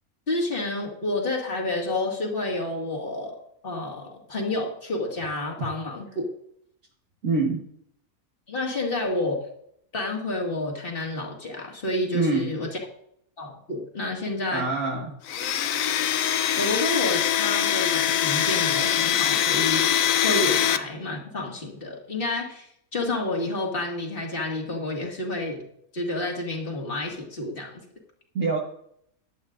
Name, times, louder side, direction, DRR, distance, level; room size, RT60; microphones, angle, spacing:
voice 1, 0.3-3.3 3.6-6.3 8.5-9.4 9.9-12.7 13.4-14.7 16.6-19.9 20.2-25.6 25.9-27.7, left 2 dB, 40° left, 0 dB, 2.2 m, -29 dB
voice 2, 7.2-7.6 12.1-12.6 14.5-15.5 28.3-28.6, right 3 dB, 65° right, -2 dB, 1.7 m, -26 dB
Domestic sounds home sounds, 15.3-20.8, left 10 dB, 70° left, 1.0 m, -23 dB
15.5 x 11.0 x 2.5 m, 0.70 s
omnidirectional pair, 1.5 m